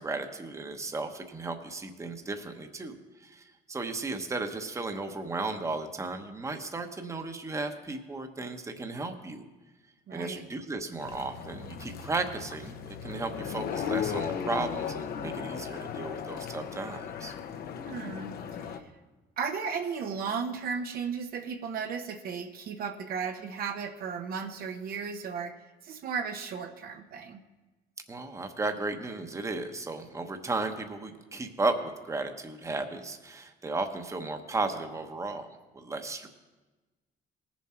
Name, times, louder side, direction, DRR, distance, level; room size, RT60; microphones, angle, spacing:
voice 1, 0.0-9.5 10.1-17.3 28.1-35.5 35.7-36.3, right 3 dB, 15° right, 6 dB, 1.0 m, -35 dB
voice 2, 10.1-10.4 17.9-18.8 19.4-25.6 25.8-27.4, right 6 dB, 60° right, 5 dB, 0.9 m, -35 dB
sound 1, 11.0-18.8, left 7 dB, 60° left, 0.9 m, -36 dB
18.5 x 7.3 x 4.4 m, 1.2 s
cardioid pair, 110°, 17 cm